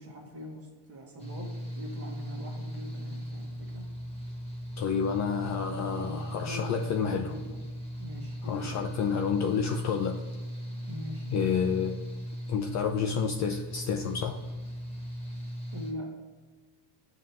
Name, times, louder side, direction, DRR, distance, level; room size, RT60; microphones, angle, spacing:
voice 1, 0.0-3.8 6.0-7.6 8.0-8.9 10.8-11.3 15.7-16.2, equal, 30° right, 0 dB, 1.5 m, -42 dB
Mechanical fan, 1.2-15.9, equal, 10° left, 1.3 m, -38 dB
voice 2, 4.8-7.3 8.4-10.2 11.3-12.0 12.5-14.4, left 6 dB, 35° left, 4 dB, 0.4 m, -29 dB
7.3 x 3.0 x 5.7 m, 1.3 s
cardioid pair, 135°, 49 cm